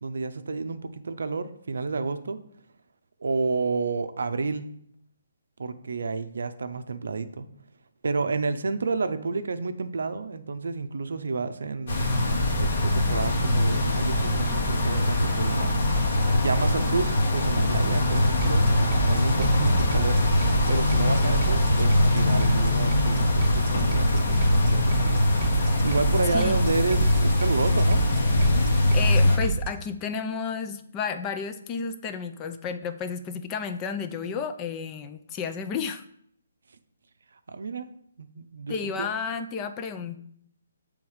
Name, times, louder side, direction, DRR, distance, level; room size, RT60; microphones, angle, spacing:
voice 1, 0.0-2.4 3.2-4.6 5.6-7.5 8.0-12.1 12.6-15.7 16.3-20.2 20.7-25.2 25.8-28.0 37.5-37.9 38.2-39.1, right 4 dB, 65° right, 10 dB, 0.5 m, -30 dB
sound 1, 11.9-29.4, left 1 dB, 55° left, 1.4 m, -22 dB
sound 2, 18.1-29.7, right 4 dB, 30° right, 1.1 m, -30 dB
voice 2, 28.9-36.0 38.7-40.2, left 6 dB, 20° left, 8 dB, 0.4 m, -32 dB
7.0 x 3.5 x 4.8 m, 0.68 s
figure-of-eight pair, 140°, 0 cm